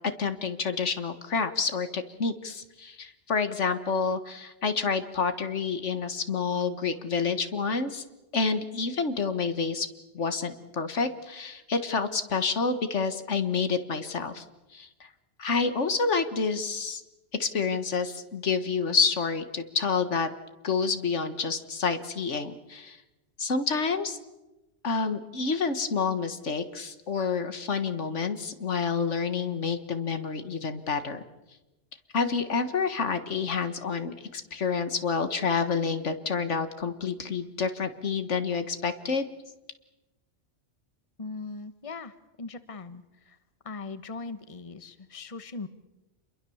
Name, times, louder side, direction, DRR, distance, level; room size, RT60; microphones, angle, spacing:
voice 1, 0.2-8.0 8.3-9.9 10.1-14.4 14.7-15.1 15.4-17.0 17.4-20.3 20.6-23.0 23.4-24.2 24.8-31.2 32.1-39.3, left 5 dB, 80° left, 9 dB, 1.9 m, -28 dB
voice 2, 41.2-42.1 42.4-43.0 43.6-45.7, left 3 dB, 30° left, 11 dB, 1.2 m, -39 dB
29.0 x 22.0 x 7.2 m, 1.0 s
omnidirectional pair, 1.2 m